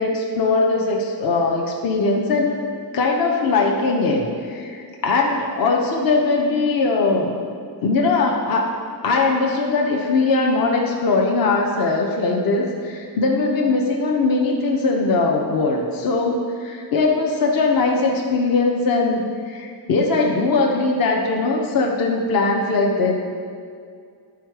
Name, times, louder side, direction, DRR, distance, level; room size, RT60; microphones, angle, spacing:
voice 1, 0.0-2.6 2.9-7.3 7.8-8.6 9.0-23.1, left 3 dB, 50° left, 0 dB, 0.8 m, -20 dB
10.5 x 4.7 x 4.7 m, 2.2 s
cardioid pair, 145°, 44 cm